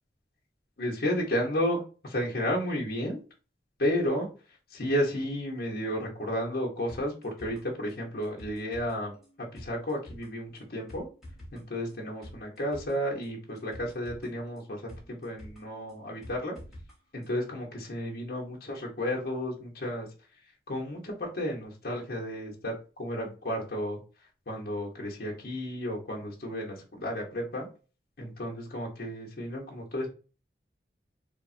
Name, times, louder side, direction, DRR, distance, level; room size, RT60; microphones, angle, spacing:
voice 1, 0.8-3.2 3.8-4.3 4.7-9.1 9.5-11.1 11.5-16.6 17.1-20.1 20.7-24.0 24.5-27.7 28.2-30.1, equal, 60° left, -2 dB, 0.8 m, -32 dB
sound 1, 6.9-16.9 17.2-17.3, equal, ahead, 0.8 m, -49 dB
3.4 x 2.0 x 2.5 m, 0.35 s
head